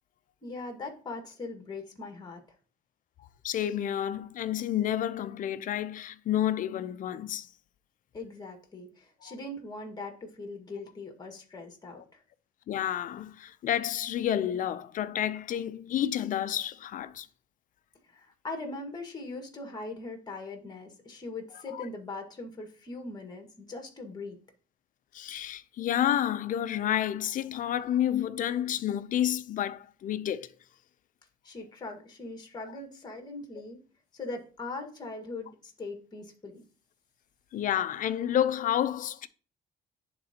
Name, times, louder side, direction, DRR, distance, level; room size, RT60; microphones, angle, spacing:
voice 1, 0.4-2.4 8.1-12.2 18.0-24.4 31.4-33.8 34.1-36.6, left 3 dB, 25° left, 1.8 m, -40 dB
voice 2, 3.4-7.5 9.2-9.3 12.7-17.3 21.7-21.8 25.1-30.5 37.5-39.3, left 11 dB, 50° left, 0.5 m, -30 dB
10.5 x 3.8 x 2.9 m
cardioid pair, 110°, 17 cm